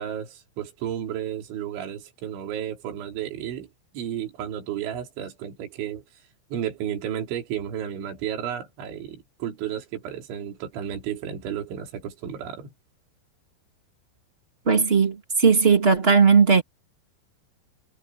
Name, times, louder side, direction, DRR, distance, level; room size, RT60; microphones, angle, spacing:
voice 1, 0.0-3.7 3.9-6.0 6.5-12.7, right 10 dB, 70° right, 5.7 m, -32 dB
voice 2, 14.6-16.6, right 5 dB, 20° right, 1.5 m, -17 dB
omnidirectional pair, 5.8 m